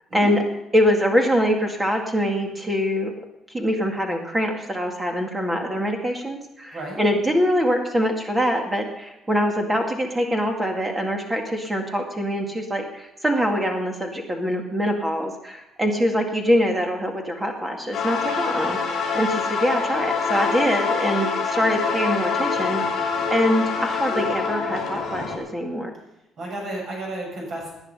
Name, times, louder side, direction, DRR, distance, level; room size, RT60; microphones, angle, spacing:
voice 1, 0.7-3.1 3.5-22.8 23.3-25.9, equal, 10° right, 2 dB, 2.1 m, -24 dB
voice 2, 6.7-7.0 26.4-27.7, right 1 dB, 40° right, 0 dB, 6.7 m, -32 dB
sound 1, 17.9-25.4, left 5 dB, 40° left, 6.1 m, -25 dB
19.0 x 10.0 x 5.5 m, 0.93 s
cardioid pair, 170°, 0 cm